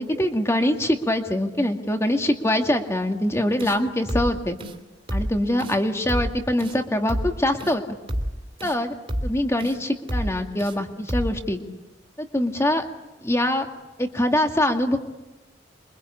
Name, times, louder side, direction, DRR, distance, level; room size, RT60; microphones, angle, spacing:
voice 1, 0.0-4.6 5.1-7.8 8.6-8.9 9.2-11.6 12.2-12.8 13.2-13.7 14.0-15.0, left 1 dB, 15° left, 4 dB, 2.2 m, -23 dB
sound 1, 3.6-3.8 4.1-4.3 4.6-4.8 5.1-5.3 5.6-5.8 6.1-6.3 6.6-6.8 7.1-7.3 7.6-7.8 8.1-8.3 8.6-8.8 9.1-9.3 9.6-9.8 10.1-10.3 10.6-10.8 11.1-11.3, equal, 30° right, 3.0 m, -28 dB
28.5 x 24.0 x 8.6 m, 1.1 s
head